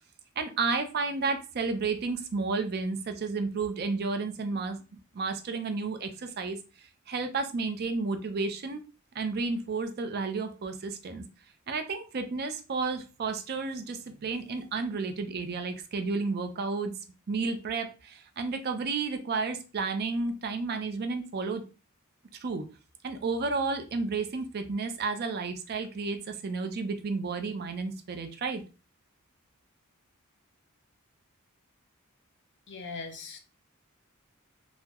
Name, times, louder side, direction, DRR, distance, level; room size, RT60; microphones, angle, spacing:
voice 1, 0.4-4.8 5.1-6.6 7.1-8.8 9.1-11.2 11.7-16.9 17.3-21.6 22.4-22.6 23.0-28.6, right 4 dB, 50° right, 7 dB, 0.5 m, -32 dB
voice 2, 32.7-33.4, left 4 dB, 55° left, 7 dB, 0.6 m, -40 dB
3.5 x 2.0 x 2.9 m, 0.32 s
head